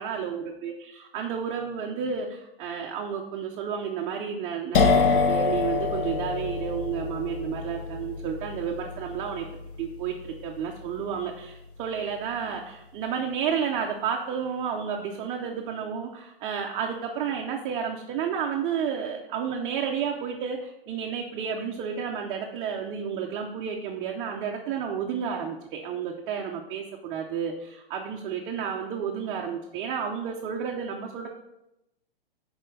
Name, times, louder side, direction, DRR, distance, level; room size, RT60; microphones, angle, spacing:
voice 1, 0.0-9.5 9.8-31.3, right 7 dB, 20° right, 0 dB, 0.4 m, -31 dB
sound 1, 4.7-12.3, left 4 dB, 60° left, 1.0 m, -27 dB
6.5 x 4.3 x 6.3 m, 0.89 s
hypercardioid pair, 140°, 30 cm